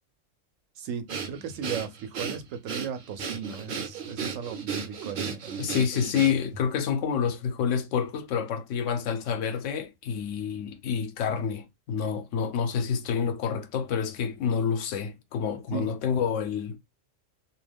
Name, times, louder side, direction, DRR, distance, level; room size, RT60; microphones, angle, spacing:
voice 1, 0.8-5.7 15.7-15.9, right 7 dB, 85° right, 1.0 m, -36 dB
Breathing, 1.1-6.6, right 6 dB, 55° right, 0.7 m, -34 dB
voice 2, 5.6-16.8, left 7 dB, 75° left, 0.9 m, -28 dB
2.5 x 2.2 x 3.2 m
omnidirectional pair, 1.3 m